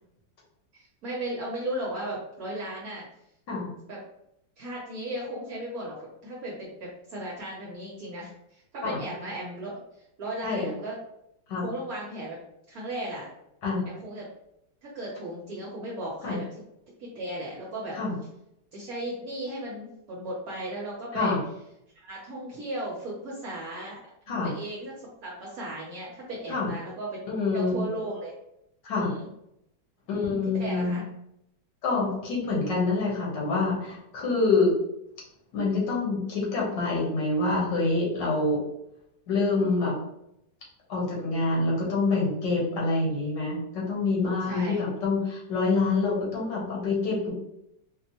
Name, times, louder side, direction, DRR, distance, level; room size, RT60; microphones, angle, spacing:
voice 1, 0.7-3.1 3.9-4.0 4.6-6.0 6.2-9.7 10.2-11.0 11.6-12.4 12.7-13.3 13.9-14.3 14.8-16.4 17.0-18.0 18.7-21.4 22.0-24.0 24.3-27.2 27.5-28.3 28.9-29.3 30.1-31.0 44.5-44.8, right 1 dB, 65° right, -4 dB, 1.1 m, -36 dB
voice 2, 27.3-27.8 28.8-29.1 30.1-31.0 31.8-34.7 35.5-38.6 39.3-39.9 40.9-47.3, left 3 dB, 75° left, -3 dB, 1.7 m, -26 dB
4.3 x 2.1 x 2.8 m, 0.81 s
omnidirectional pair, 1.9 m